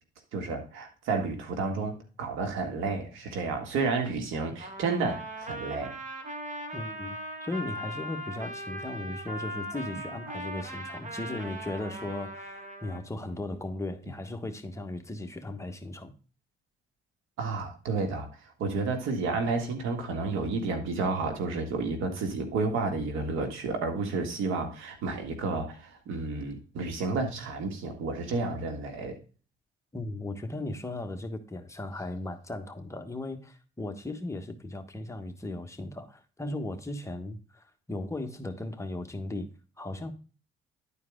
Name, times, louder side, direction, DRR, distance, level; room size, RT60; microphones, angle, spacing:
voice 1, 0.3-5.9 17.4-18.3 18.6-29.2, right 3 dB, 90° right, 1.9 m, -31 dB
Trumpet, 4.6-13.0, right 1 dB, 40° right, 2.1 m, -39 dB
voice 2, 6.7-16.1 29.9-39.5 39.8-40.1, left 2 dB, 15° left, 1.3 m, -37 dB
11.0 x 4.6 x 3.7 m
cardioid pair, 90°, 20 cm